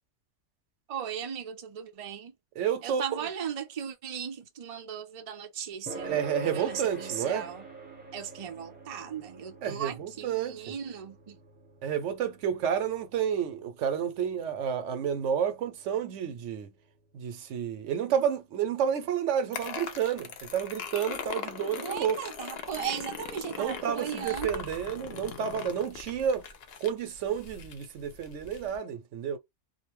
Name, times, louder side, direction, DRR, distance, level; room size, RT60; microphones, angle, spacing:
voice 1, 0.9-2.3 2.8-6.2 6.4-7.6 8.1-11.4 21.8-24.6, right 8 dB, 45° right, 0.4 m, -37 dB
voice 2, 2.6-3.3 6.0-7.5 9.6-10.7 11.8-16.7 17.1-22.2 23.6-26.4 26.8-29.4, right 8 dB, 80° right, 0.9 m, -30 dB
sound 1, 5.9-20.8, right 3 dB, 10° right, 0.9 m, -47 dB
sound 2, 19.5-28.8, left 6 dB, 60° left, 0.8 m, -40 dB
2.6 x 2.1 x 2.9 m
omnidirectional pair, 1.3 m